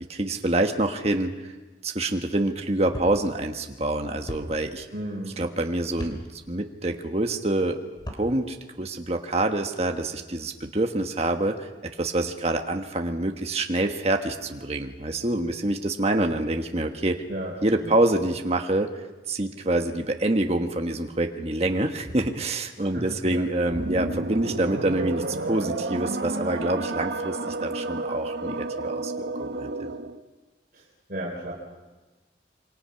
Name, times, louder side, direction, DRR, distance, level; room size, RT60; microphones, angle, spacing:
voice 1, 0.1-1.5 1.8-4.9 5.4-7.8 8.1-11.7 12.0-17.2 17.6-18.9 19.3-29.7, right 1 dB, 35° right, 4 dB, 1.4 m, -26 dB
sound 1, 2.9-3.1 4.3-4.4 5.9-6.2 7.9-8.3, equal, 25° left, 3.6 m, -35 dB
voice 2, 4.9-5.4 17.3-17.6 17.8-17.9 22.8-23.5 30.7-31.5, right 1 dB, 50° right, -3 dB, 4.2 m, -34 dB
sound 2, 23.7-30.2, right 2 dB, 85° right, 1.2 m, -31 dB
27.0 x 25.0 x 5.8 m, 1.2 s
head